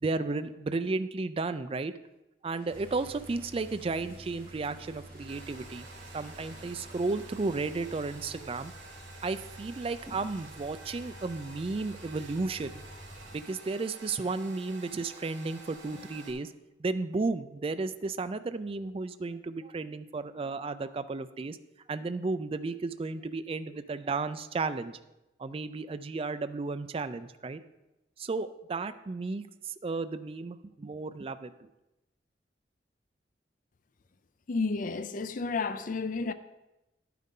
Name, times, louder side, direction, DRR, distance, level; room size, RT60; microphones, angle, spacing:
voice 1, 0.0-1.9 2.4-5.9 6.1-8.7 9.2-12.8 13.3-16.5 16.8-21.6 21.9-25.0 25.4-27.6 28.2-31.7, right 3 dB, 30° right, 0.4 m, -33 dB
sound 1, 2.5-7.9, right 2 dB, 55° right, 3.0 m, -57 dB
sound 2, 2.7-13.4, right 1 dB, 10° left, 4.2 m, -49 dB
Domestic sounds home sounds, 5.3-16.3, right 3 dB, 85° right, 2.6 m, -50 dB
voice 2, 34.5-36.3, left 4 dB, 45° left, 0.4 m, -31 dB
11.0 x 9.3 x 3.8 m
head